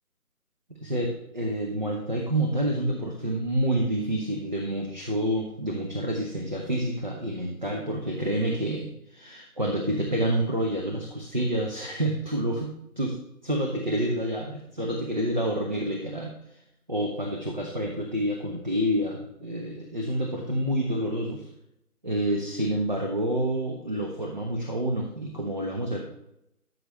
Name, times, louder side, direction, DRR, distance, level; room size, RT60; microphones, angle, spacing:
voice 1, 0.8-13.2 13.4-16.4 16.9-21.5 22.0-26.1, right 1 dB, 30° right, 0 dB, 0.9 m, -28 dB
12.0 x 6.4 x 3.1 m, 0.83 s
figure-of-eight pair, 160°, 46 cm